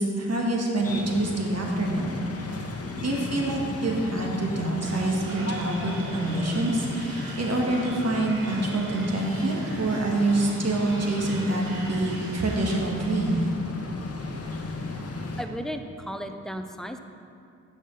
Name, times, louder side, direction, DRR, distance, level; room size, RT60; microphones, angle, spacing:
voice 1, 0.0-2.2 3.0-13.4, right 2 dB, 45° right, -1 dB, 1.5 m, -26 dB
sound 1, 0.8-15.4, left 3 dB, 45° left, 1.0 m, -35 dB
sound 2, 4.8-13.5, right 2 dB, 85° right, 1.2 m, -41 dB
voice 2, 15.4-17.0, equal, ahead, 6 dB, 0.5 m, -34 dB
6.7 x 4.7 x 5.9 m, 2.5 s
supercardioid pair, 40°, 34 cm